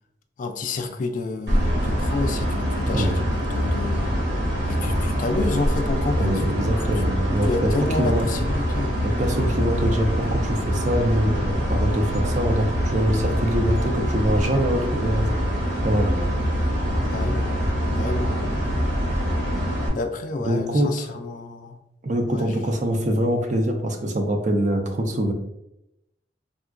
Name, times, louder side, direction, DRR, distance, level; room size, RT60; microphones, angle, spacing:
voice 1, 0.4-4.1 4.7-6.4 7.4-9.1 17.1-17.5 17.9-18.5 20.0-21.8 22.3-22.5, left 3 dB, 45° left, 6 dB, 0.3 m, -29 dB
sound 1, 1.5-19.9, equal, 80° right, 1.0 m, -24 dB
voice 2, 2.9-3.2 6.2-7.7 8.0-8.3 9.0-15.3 15.8-16.2 20.4-21.1 22.0-25.3, right 1 dB, 45° right, 4 dB, 0.4 m, -24 dB
3.6 x 2.3 x 2.4 m, 0.86 s
head